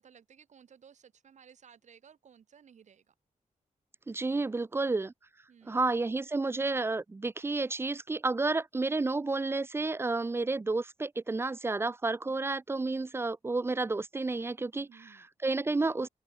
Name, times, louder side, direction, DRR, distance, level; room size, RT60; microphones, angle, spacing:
voice 1, 0.0-3.1 5.5-5.9 14.9-15.3, right 7 dB, 65° right, 4.6 m, -58 dB
voice 2, 4.1-5.1 5.7-14.9 15.4-16.1, right 3 dB, 20° right, 0.4 m, -31 dB
wide cardioid pair, 150°, 13 cm